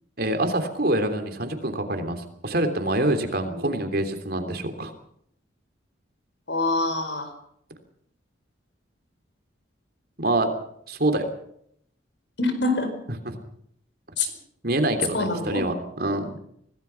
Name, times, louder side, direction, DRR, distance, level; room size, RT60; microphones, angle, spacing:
voice 1, 0.2-4.9 10.2-10.5 10.9-11.3 13.2-13.4 14.6-16.3, right 1 dB, 50° right, 7 dB, 3.2 m, -25 dB
voice 2, 6.5-7.3 12.4-12.9 14.2-14.3 15.1-15.6, left 2 dB, 65° left, 8 dB, 4.8 m, -25 dB
25.5 x 18.0 x 5.8 m, 0.70 s
head